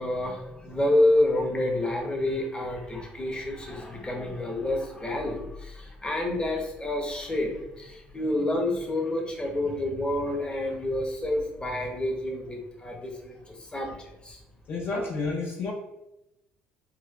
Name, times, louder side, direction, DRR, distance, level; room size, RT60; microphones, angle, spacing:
voice 1, 0.0-14.4, left 1 dB, 20° left, 2 dB, 0.9 m, -28 dB
voice 2, 14.7-15.7, left 3 dB, 50° left, 0 dB, 0.6 m, -30 dB
4.2 x 2.4 x 2.3 m, 0.91 s
hypercardioid pair, 60°, 4 cm